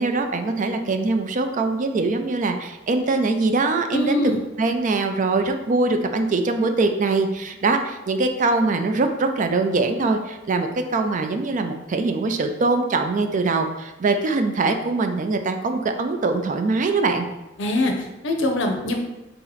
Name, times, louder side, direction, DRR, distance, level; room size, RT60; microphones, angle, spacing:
voice 1, 0.0-4.2 4.6-17.3, right 3 dB, 40° right, 6 dB, 0.4 m, -22 dB
voice 2, 3.9-4.4 17.6-19.0, left 1 dB, 65° left, 3 dB, 0.7 m, -23 dB
4.0 x 2.8 x 4.0 m, 0.98 s
head